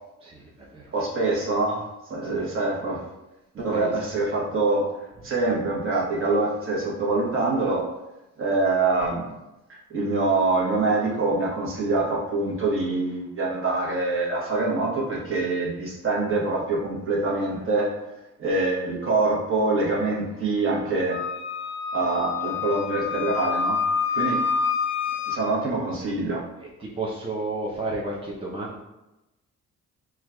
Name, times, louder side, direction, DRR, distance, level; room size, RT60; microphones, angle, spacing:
voice 1, 0.2-0.9 2.2-2.4 3.7-3.9 5.2-5.3 24.2-24.3 26.6-28.8, right 2 dB, 20° right, -5 dB, 0.6 m, -33 dB
voice 2, 0.9-1.8 2.1-3.0 3.5-4.9 5.2-7.9 8.4-9.4 9.9-17.9 18.4-21.2 21.9-23.8 24.1-24.4 25.3-26.5, right 3 dB, 45° right, -3 dB, 1.0 m, -25 dB
Wind instrument woodwind instrument, 21.1-25.4, left 6 dB, 40° left, 0.6 m, -27 dB
4.4 x 2.4 x 2.2 m, 0.97 s
cardioid pair, 90°, 30 cm